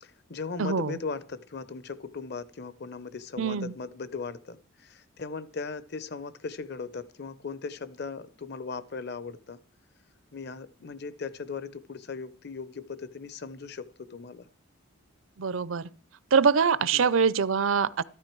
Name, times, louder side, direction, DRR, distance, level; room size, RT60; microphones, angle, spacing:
voice 1, 0.0-9.6 10.3-14.5 16.8-17.1, left 4 dB, 50° left, 0.8 m, -38 dB
voice 2, 0.6-0.9 3.4-3.7 15.4-15.9 16.3-18.0, right 6 dB, 75° right, 0.6 m, -24 dB
13.5 x 12.0 x 4.6 m
head